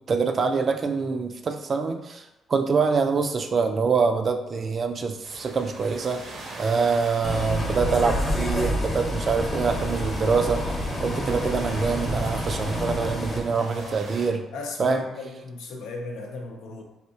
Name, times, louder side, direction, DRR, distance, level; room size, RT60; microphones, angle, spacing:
voice 1, 0.0-2.2 2.5-6.2 6.6-14.4 14.8-15.0, right 5 dB, 45° right, 6 dB, 0.4 m, -25 dB
sound 1, 5.2-14.3, right 2 dB, 70° right, 0.7 m, -42 dB
Bus, 7.2-13.4, equal, 30° left, 0.8 m, -28 dB
voice 2, 13.5-14.0 14.5-16.8, left 3 dB, 90° left, 1 dB, 0.6 m, -37 dB
3.4 x 2.7 x 2.8 m, 0.96 s
cardioid pair, 90°, 0 cm